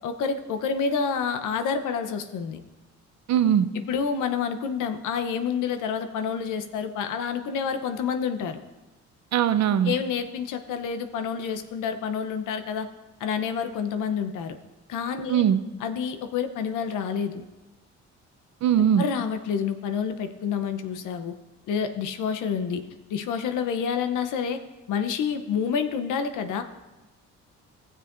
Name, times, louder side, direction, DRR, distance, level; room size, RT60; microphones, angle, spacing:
voice 1, 0.0-2.6 3.9-8.6 9.8-12.9 13.2-14.5 14.9-15.4 15.8-17.4 19.0-21.3 21.7-22.8 23.1-24.6 24.9-26.6, left 6 dB, 85° left, 8 dB, 0.8 m, -28 dB
voice 2, 3.3-3.7 9.3-9.9 15.3-15.6 18.6-19.0, right 9 dB, 65° right, 11 dB, 0.6 m, -20 dB
15.5 x 7.6 x 2.6 m, 1.1 s
cardioid pair, 90°, 30 cm